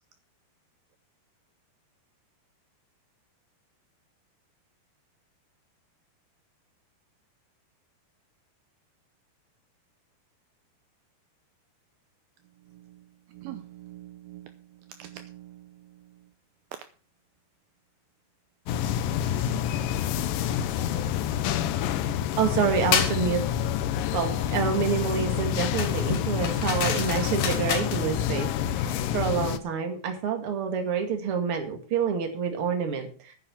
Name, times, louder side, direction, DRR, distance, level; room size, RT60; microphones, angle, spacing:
voice 1, 12.7-16.3 20.0-20.1, right 13 dB, 85° right, 9 dB, 2.2 m, -46 dB
sound 1, 18.7-29.6, left 10 dB, 90° left, 1.9 m, -28 dB
voice 2, 22.4-23.4 24.1-28.5 28.8-33.3, right 6 dB, 40° right, 4 dB, 2.3 m, -27 dB
sound 2, 22.9-23.2 25.8-28.0, left 7 dB, 60° left, 2.9 m, -29 dB
9.7 x 9.5 x 5.9 m, 0.39 s
omnidirectional pair, 5.0 m